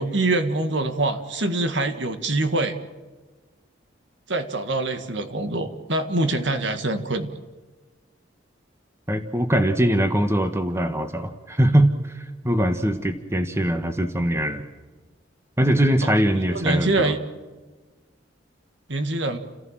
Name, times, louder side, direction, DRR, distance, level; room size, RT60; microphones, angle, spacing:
voice 1, 0.0-2.8 4.3-7.3 16.5-17.2 18.9-19.4, right 2 dB, 70° right, 8 dB, 1.9 m, -24 dB
voice 2, 9.1-14.6 15.6-17.1, right 1 dB, 15° right, 7 dB, 1.4 m, -22 dB
29.5 x 15.5 x 7.4 m, 1.3 s
head